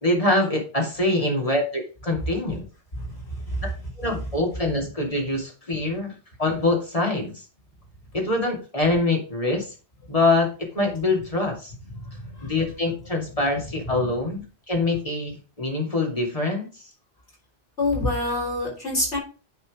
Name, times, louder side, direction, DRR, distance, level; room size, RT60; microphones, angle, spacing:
voice 1, 0.0-2.6 4.0-6.1 6.4-7.4 8.1-9.7 10.1-11.7 12.4-16.7, left 2 dB, 35° left, 0 dB, 2.6 m, -24 dB
voice 2, 2.9-3.7 12.2-12.5 13.9-14.1 17.8-19.2, left 2 dB, 80° left, -4 dB, 4.8 m, -27 dB
9.9 x 4.4 x 4.9 m, 0.35 s
omnidirectional pair, 1.1 m